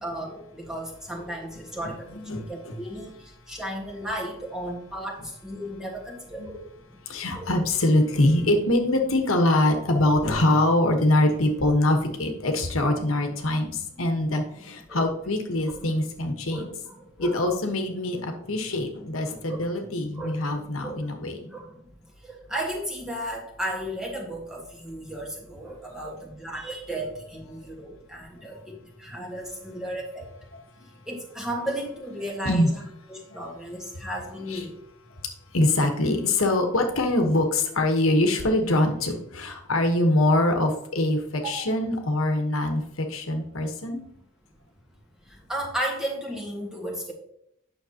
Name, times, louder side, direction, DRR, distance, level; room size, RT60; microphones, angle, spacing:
voice 1, 0.0-2.2 2.5-3.1 3.5-5.1 5.4-6.6 7.3-7.5 14.9-15.1 15.6-15.9 16.5-17.4 19.4-19.7 20.2-20.4 20.8-21.1 21.4-21.6 22.3-30.2 31.1-32.8 33.1-34.7 41.3-41.7 45.5-47.1, right 1 dB, 5° right, -2 dB, 1.5 m, -34 dB
voice 2, 1.8-2.7 6.4-6.5 7.1-16.7 17.2-21.5 25.8-26.1 32.4-32.7 34.5-34.6 35.5-44.0, left 1 dB, 85° left, 4 dB, 1.2 m, -24 dB
9.3 x 6.4 x 2.9 m, 0.73 s
head